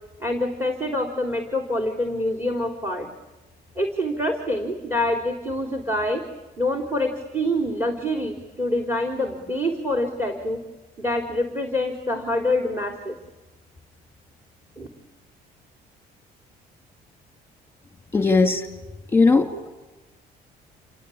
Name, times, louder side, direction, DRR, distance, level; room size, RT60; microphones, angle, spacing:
voice 1, 0.2-3.1 3.8-6.2 6.6-10.6 11.0-13.1 14.8-14.9, left 1 dB, 15° right, 3 dB, 3.8 m, -26 dB
voice 2, 18.1-18.7 19.1-19.5, left 3 dB, 15° left, 5 dB, 2.7 m, -17 dB
29.5 x 22.5 x 8.7 m, 1.1 s
cardioid pair, 110°, 17 cm